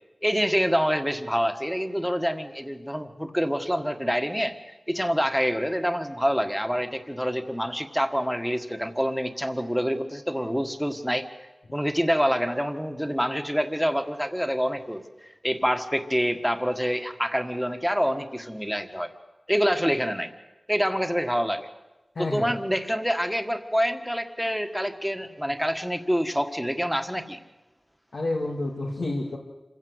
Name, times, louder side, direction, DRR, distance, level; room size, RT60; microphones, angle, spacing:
voice 1, 0.2-4.6 4.9-11.3 11.7-15.0 15.4-19.1 19.5-20.3 20.7-21.7 22.2-27.4, equal, ahead, 7 dB, 1.6 m, -26 dB
voice 2, 22.1-22.5 28.1-29.4, left 2 dB, 90° left, -3 dB, 2.4 m, -29 dB
26.5 x 15.5 x 8.1 m, 1.1 s
wide cardioid pair, 60°, 0 cm